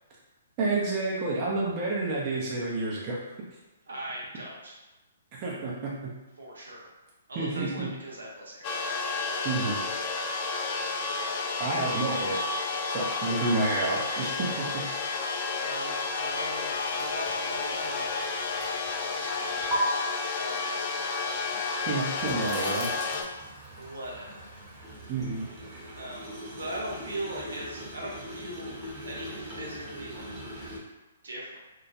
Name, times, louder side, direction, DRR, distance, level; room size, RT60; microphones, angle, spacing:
voice 1, 0.6-3.2 5.3-5.9 7.4-7.9 9.4-9.8 11.6-14.8 21.8-22.9 25.1-25.4 25.7-25.9, right 3 dB, 35° right, -5 dB, 0.5 m, -30 dB
voice 2, 3.9-4.8 6.4-6.9 7.3-8.8 15.6-18.0 19.1-19.8 20.4-21.3 23.8-24.6 25.9-28.8 29.0-30.2 31.2-31.6, right 1 dB, 80° right, -4 dB, 0.7 m, -39 dB
sound 1, 8.6-23.2, left 4 dB, 35° left, 0.3 m, -31 dB
sound 2, 16.2-19.8 21.3-30.8, right 1 dB, 15° right, 0.8 m, -41 dB
2.2 x 2.0 x 2.7 m, 1.1 s
figure-of-eight pair, 130°, 0 cm